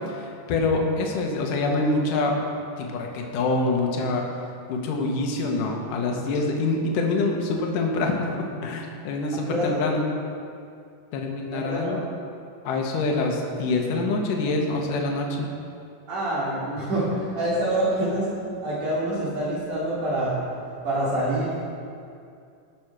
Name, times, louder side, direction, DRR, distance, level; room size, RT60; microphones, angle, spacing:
voice 1, 0.0-2.4 2.8-4.3 4.7-10.1 11.1-12.0 12.6-15.5, left 3 dB, 70° left, 1 dB, 2.7 m, -25 dB
voice 2, 9.3-9.8 11.5-12.0 16.1-18.3 18.6-20.4 20.8-21.6, right 1 dB, 65° right, -7 dB, 4.8 m, -26 dB
17.5 x 6.1 x 6.1 m, 2.4 s
omnidirectional pair, 4.0 m